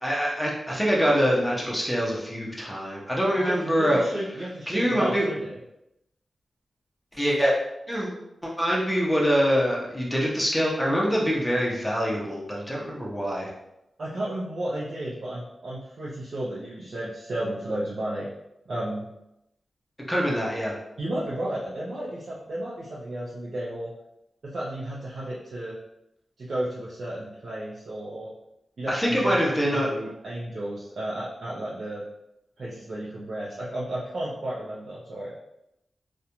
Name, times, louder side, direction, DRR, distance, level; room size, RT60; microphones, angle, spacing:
voice 1, 0.0-4.0 4.7-5.2 7.1-7.5 7.9-8.1 8.4-13.5 20.1-20.7 28.9-29.9, equal, 5° left, -4 dB, 0.6 m, -24 dB
voice 2, 3.4-5.6 14.0-18.3 18.7-19.1 21.0-23.9 24.4-25.8 26.4-28.3 28.8-29.4 29.7-32.0 32.6-35.3, right 1 dB, 60° right, -7 dB, 0.5 m, -33 dB
2.4 x 2.1 x 2.8 m, 0.86 s
wide cardioid pair, 130°, 0 cm